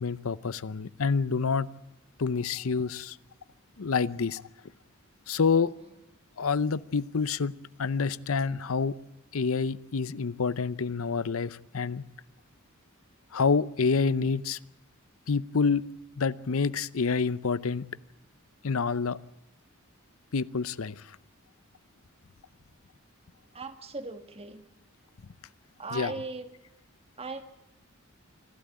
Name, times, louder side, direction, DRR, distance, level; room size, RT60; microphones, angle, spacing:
voice 1, 0.0-1.7 2.2-3.2 3.8-4.4 5.3-5.7 6.4-7.5 7.8-9.0 9.3-12.0 13.3-14.6 15.3-15.8 16.2-17.8 18.6-19.2 20.3-21.2 25.9-26.1, left 5 dB, 75° left, 17 dB, 0.7 m, -27 dB
voice 2, 23.5-24.6 25.8-26.5 27.2-27.4, right 3 dB, 30° right, 8 dB, 1.7 m, -38 dB
27.0 x 13.0 x 8.7 m, 0.94 s
head